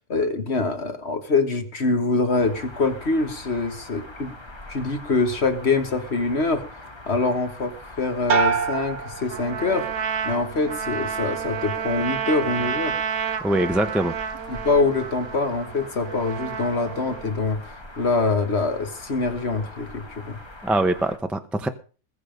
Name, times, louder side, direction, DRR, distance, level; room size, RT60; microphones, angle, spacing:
voice 1, 0.1-4.3 4.7-6.6 7.1-9.9 10.2-13.0 14.5-20.4, left 3 dB, 40° left, 7 dB, 1.7 m, -24 dB
sound 1, 2.4-21.2, left 1 dB, 20° left, 1.2 m, -43 dB
sound 2, 8.3-10.0 10.4-11.0, right 6 dB, 80° right, 1.9 m, -26 dB
Trumpet, 9.3-17.4, right 8 dB, 60° right, 1.3 m, -31 dB
voice 2, 13.4-14.2 20.6-21.7, right 1 dB, ahead, 8 dB, 0.5 m, -23 dB
21.0 x 7.1 x 5.2 m, 0.39 s
omnidirectional pair, 1.8 m